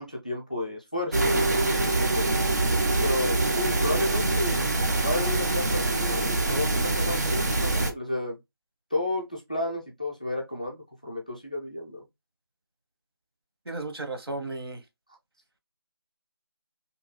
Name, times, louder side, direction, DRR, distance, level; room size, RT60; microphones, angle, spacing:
voice 1, 0.0-2.3 3.0-4.7 5.0-8.4 8.9-12.0, left 2 dB, 20° left, 0.3 m, -32 dB
sound 1, 1.1-7.9, right 2 dB, 45° right, 0.4 m, -25 dB
voice 2, 13.7-14.8, right 2 dB, 75° right, 0.8 m, -34 dB
2.7 x 2.1 x 2.8 m
figure-of-eight pair, 175°, 13 cm